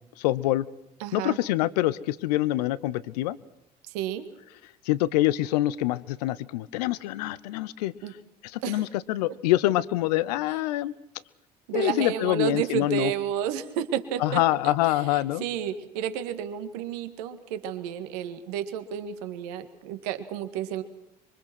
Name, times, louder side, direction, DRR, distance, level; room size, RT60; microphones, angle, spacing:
voice 1, 0.2-0.7 1.1-3.4 4.9-7.9 8.4-10.9 11.7-13.1 14.2-15.4, left 16 dB, 75° left, 19 dB, 0.8 m, -25 dB
voice 2, 1.0-1.4 3.8-4.2 8.0-8.1 8.6-8.8 11.7-14.4 14.8-20.8, right 9 dB, 75° right, 9 dB, 1.9 m, -31 dB
26.0 x 24.0 x 6.2 m, 0.81 s
hypercardioid pair, 60°, 21 cm